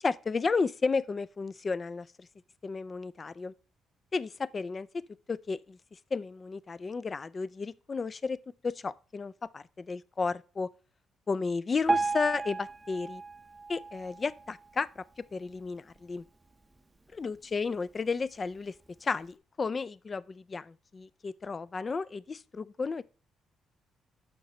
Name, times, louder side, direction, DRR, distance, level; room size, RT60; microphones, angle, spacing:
voice 1, 0.0-2.1 2.6-3.5 4.1-4.9 5.3-5.8 6.1-8.4 8.6-10.7 11.3-13.2 13.7-15.0 15.3-16.2 17.2-18.7 19.0-23.0, left 4 dB, 35° left, 0.3 m, -33 dB
Piano, 11.9-15.0 15.5-15.7 16.0-16.1 16.8-16.9 17.4-17.5, right 3 dB, 15° right, 0.8 m, -33 dB
6.5 x 5.8 x 4.2 m
cardioid pair, 90°, 0 cm